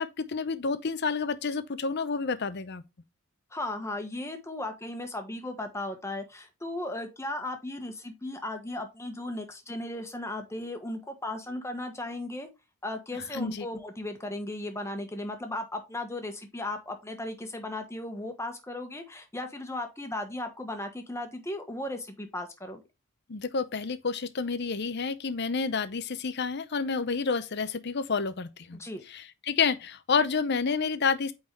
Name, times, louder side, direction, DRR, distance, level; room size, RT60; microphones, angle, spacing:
voice 1, 0.0-2.8 13.3-13.7 23.3-28.8 29.1-31.3, left 5 dB, 50° left, 0.7 m, -29 dB
voice 2, 3.5-12.5 12.8-22.8 28.7-29.0, left 1 dB, 15° left, 1.2 m, -36 dB
8.8 x 4.0 x 3.2 m
head